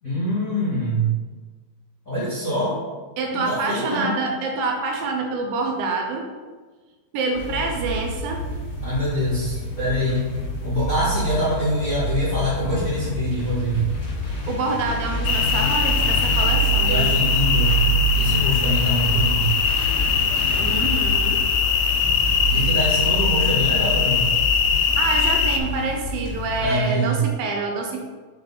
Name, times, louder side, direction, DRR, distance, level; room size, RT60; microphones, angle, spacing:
voice 1, 0.0-1.1 2.0-2.8 3.4-4.1 8.8-10.2 10.6-13.8 16.8-17.7 18.1-19.5 22.5-24.3 26.6-27.2, equal, 30° left, -10 dB, 1.8 m, -24 dB
voice 2, 3.2-6.3 7.1-8.4 14.3-17.2 20.6-21.4 24.8-28.0, right 3 dB, 80° right, 2 dB, 2.4 m, -26 dB
sound 1, 7.3-26.6, right 2 dB, 50° left, 3.0 m, -27 dB
sound 2, 15.3-25.6, left 6 dB, 80° left, 2.2 m, -21 dB
6.6 x 5.6 x 4.0 m, 1.4 s
omnidirectional pair, 4.2 m